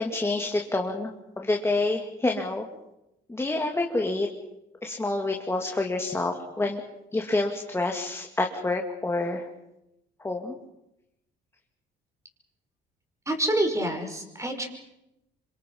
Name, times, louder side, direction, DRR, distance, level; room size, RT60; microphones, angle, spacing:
voice 1, 0.0-2.7 3.3-4.3 4.8-6.8 7.1-9.5 10.2-10.6, left 2 dB, 15° left, 2 dB, 2.6 m, -28 dB
voice 2, 13.3-14.7, right 1 dB, 15° right, 5 dB, 5.5 m, -27 dB
27.5 x 25.5 x 5.6 m, 0.89 s
cardioid pair, 105°, 19 cm